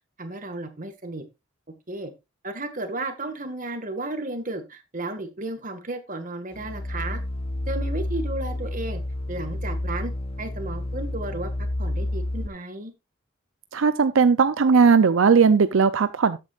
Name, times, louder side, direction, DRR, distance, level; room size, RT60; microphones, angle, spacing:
voice 1, 0.2-1.2 1.9-2.1 2.4-7.2 7.7-9.0 9.3-10.1 10.4-11.5 11.8-12.9, right 2 dB, 40° right, 1.7 m, -33 dB
sound 1, 6.5-12.5, left 1 dB, 30° left, 0.6 m, -30 dB
voice 2, 13.7-16.4, right 5 dB, 75° right, 0.5 m, -18 dB
13.0 x 8.6 x 2.4 m
head